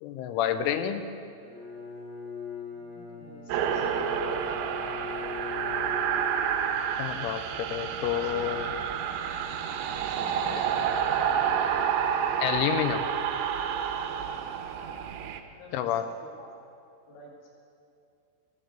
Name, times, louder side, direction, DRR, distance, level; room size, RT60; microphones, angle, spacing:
voice 1, 0.0-1.1 7.0-8.7 12.4-13.1 15.7-16.1, left 10 dB, 85° left, 9 dB, 3.1 m, -29 dB
Bowed string instrument, 1.4-6.9, left 5 dB, 45° left, 1.8 m, -40 dB
voice 2, 2.7-5.3 5.9-6.1 8.2-8.6 10.0-11.8 14.1-14.6 15.6-16.1 16.4-16.5 17.1-17.5, left 1 dB, 70° left, -4 dB, 4.7 m, -49 dB
sound 1, 3.5-15.4, right 8 dB, 85° right, 3.1 m, -29 dB
15.5 x 14.5 x 3.8 m, 2.6 s
omnidirectional pair, 5.6 m